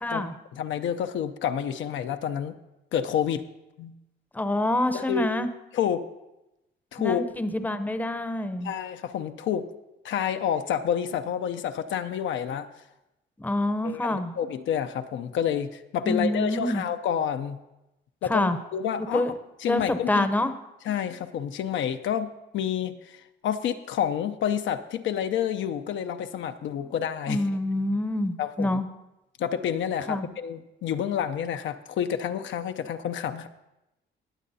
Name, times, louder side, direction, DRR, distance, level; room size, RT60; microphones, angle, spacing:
voice 1, 0.0-0.3 4.3-5.5 7.0-8.7 13.4-14.3 16.0-16.8 18.3-18.6 19.1-19.3 19.7-20.5 26.8-26.9 27.3-28.9 30.1-30.3, left 1 dB, 10° left, 10 dB, 0.7 m, -26 dB
voice 2, 0.5-2.6 2.9-3.4 3.8-3.9 4.9-5.3 5.7-6.0 6.9-7.2 8.6-9.7 10.0-12.7 13.8-17.6 18.2-19.3 19.6-20.3 20.9-27.4 28.4-28.8 29.4-33.5, left 9 dB, 75° left, 8 dB, 0.6 m, -29 dB
20.0 x 7.6 x 2.7 m, 0.94 s
cardioid pair, 90°, 20 cm